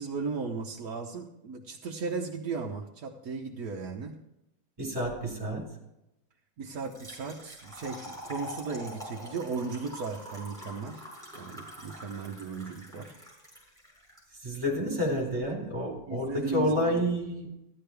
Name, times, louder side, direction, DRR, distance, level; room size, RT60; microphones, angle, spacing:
voice 1, 0.0-4.2 6.6-11.0 11.3-13.1 16.1-17.1, right 4 dB, 60° right, -1 dB, 1.4 m, -36 dB
voice 2, 4.8-5.6 14.4-17.5, equal, 20° right, -2 dB, 4.4 m, -29 dB
Trickle dribble / Fill (with liquid), 6.7-14.2, equal, ahead, 5.7 m, -45 dB
15.0 x 11.5 x 3.4 m, 0.88 s
omnidirectional pair, 1.9 m